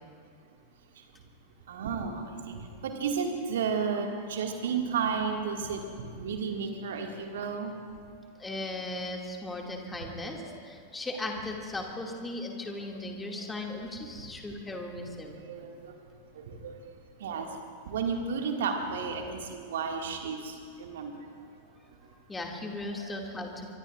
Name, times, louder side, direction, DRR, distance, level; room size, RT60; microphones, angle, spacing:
voice 1, 1.7-7.7 10.0-10.5 12.8-12.9 15.4-15.9 16.3-16.8 17.2-17.5 17.9-21.1 22.9-23.2, right 5 dB, 60° right, 2 dB, 2.1 m, -33 dB
voice 2, 8.4-15.4 22.3-23.8, left 2 dB, 10° left, 1 dB, 2.3 m, -37 dB
24.0 x 23.5 x 2.5 m, 2.3 s
figure-of-eight pair, 90°, 0 cm